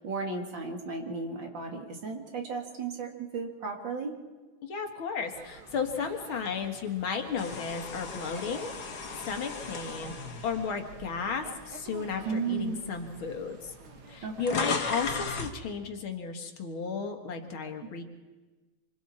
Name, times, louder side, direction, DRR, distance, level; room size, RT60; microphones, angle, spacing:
voice 1, 0.0-4.1 12.2-12.8 14.2-14.7, right 4 dB, 65° right, 2 dB, 2.8 m, -34 dB
voice 2, 4.6-8.7 9.2-12.2 12.5-13.7 14.1-18.0, left 5 dB, 75° left, 5 dB, 2.5 m, -34 dB
sound 1, 5.2-15.1, right 4 dB, 80° right, 2.5 m, -50 dB
sound 2, 7.4-11.6 12.1-12.3 13.2-13.3 13.5-15.6, left 4 dB, 55° left, 1.8 m, -36 dB
27.0 x 25.5 x 4.3 m, 1.2 s
omnidirectional pair, 2.2 m